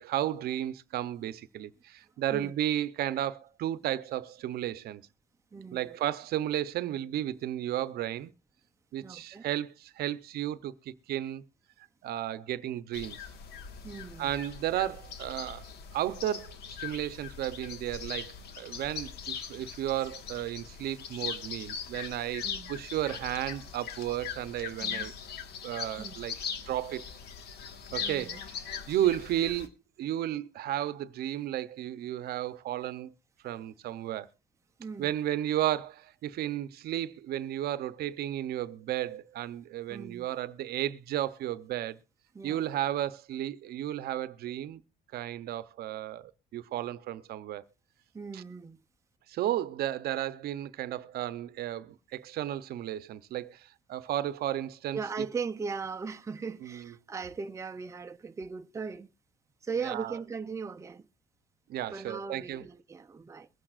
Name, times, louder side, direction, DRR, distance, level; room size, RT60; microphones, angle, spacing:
voice 1, 0.0-5.0 5.7-8.3 8.9-11.4 12.0-13.2 14.2-25.1 25.6-26.4 26.7-27.1 27.9-28.4 28.9-29.7 30.0-33.1 33.4-34.3 35.0-42.0 42.4-44.8 45.1-47.6 48.3-48.4 49.3-55.0 56.6-56.9 59.8-60.2 61.7-62.6, right 12 dB, 70° right, 0.7 m, -33 dB
voice 2, 5.5-6.0 9.0-9.5 13.8-14.3 22.4-22.7 24.8-25.1 26.0-26.2 28.0-28.4 34.8-35.2 39.9-40.3 42.3-42.6 48.1-48.8 54.9-59.1 59.6-61.1 61.9-63.5, right 5 dB, 15° right, 0.6 m, -38 dB
sound 1, 12.9-29.7, left 7 dB, 75° left, 1.5 m, -40 dB
22.5 x 8.8 x 2.4 m
cardioid pair, 110°, 17 cm